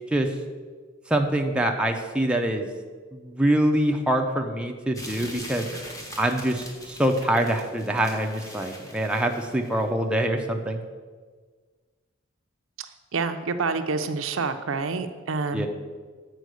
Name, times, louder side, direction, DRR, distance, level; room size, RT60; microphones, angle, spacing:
voice 1, 1.1-2.7 3.1-5.7 6.2-10.8 15.5-15.7, right 1 dB, 5° right, 2 dB, 0.6 m, -24 dB
sound 1, 4.9-9.8, equal, 15° left, 1.2 m, -42 dB
voice 2, 12.8-15.7, right 4 dB, 80° right, 8 dB, 0.6 m, -28 dB
8.2 x 4.5 x 6.3 m, 1.5 s
head